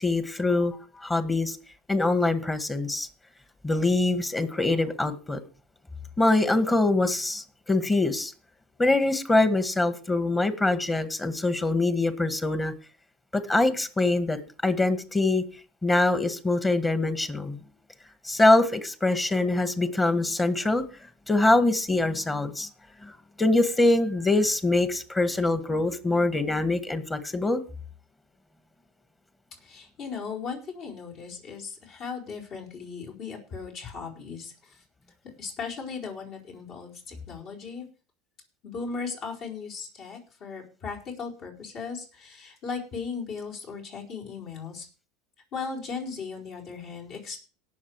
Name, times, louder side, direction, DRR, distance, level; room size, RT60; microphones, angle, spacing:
voice 1, 0.0-1.6 1.9-3.1 3.6-5.4 6.2-8.3 8.8-12.7 13.3-15.5 15.8-17.6 18.2-20.8 21.3-22.7 23.0-23.1 23.4-27.6, left 2 dB, 15° left, 11 dB, 1.8 m, -24 dB
voice 2, 29.6-34.8 35.4-37.8 38.6-44.9 45.5-47.4, left 5 dB, 50° left, -1 dB, 4.6 m, -37 dB
18.0 x 6.6 x 4.8 m, 0.38 s
hypercardioid pair, 85°, 0 cm